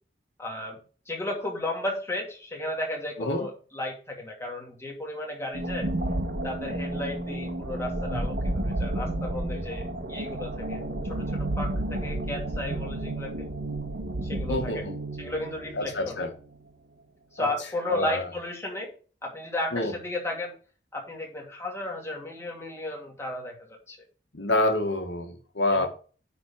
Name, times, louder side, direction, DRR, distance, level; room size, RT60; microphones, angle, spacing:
voice 1, 0.4-0.8 1.1-5.9 6.4-10.8 11.1-13.3 14.2-14.8 15.2-16.3 17.3-18.9 19.2-20.5 20.9-24.0 25.7-25.9, left 1 dB, 15° left, 2.5 m, -34 dB
sound 1, 5.5-16.6, right 1 dB, 70° right, 1.6 m, -31 dB
voice 2, 14.5-14.9 15.8-16.3 17.4-17.5 17.9-18.3 19.7-19.9 24.3-25.9, left 1 dB, 85° left, 1.7 m, -27 dB
9.6 x 4.2 x 5.8 m
head